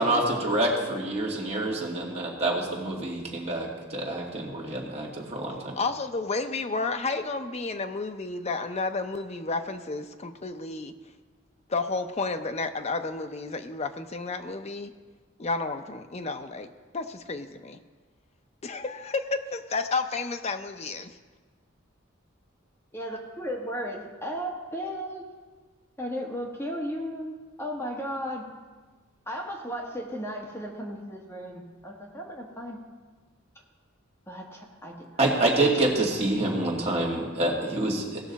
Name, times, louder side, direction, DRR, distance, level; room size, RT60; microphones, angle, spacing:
voice 1, 0.0-5.7 35.2-38.2, right 2 dB, 30° right, -3 dB, 2.0 m, -27 dB
voice 2, 5.8-10.9 11.7-14.9 15.4-17.8 18.6-21.2, left 3 dB, 30° left, 7 dB, 0.6 m, -31 dB
voice 3, 22.9-25.2 26.0-28.5 29.3-32.8 34.3-35.1, equal, 15° left, -2 dB, 1.4 m, -35 dB
18.0 x 6.2 x 4.1 m, 1.4 s
head